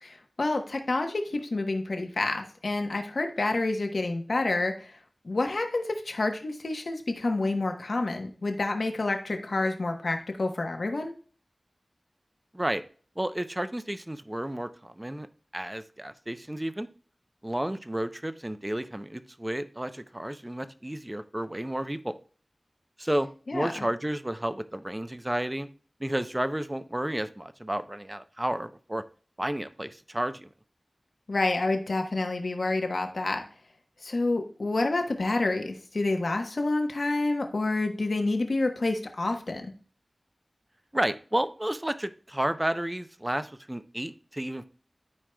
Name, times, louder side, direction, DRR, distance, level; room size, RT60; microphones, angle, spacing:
voice 1, 0.0-4.9 5.2-11.1 23.5-23.7 31.3-33.4 34.0-39.7, left 2 dB, 80° left, 4 dB, 1.1 m, -28 dB
voice 2, 13.2-15.3 15.5-16.9 17.4-22.2 23.0-25.7 26.0-29.0 29.4-30.5 40.9-44.7, right 1 dB, 20° right, 10 dB, 0.7 m, -31 dB
12.5 x 4.7 x 2.3 m, 0.42 s
wide cardioid pair, 40°, 0 cm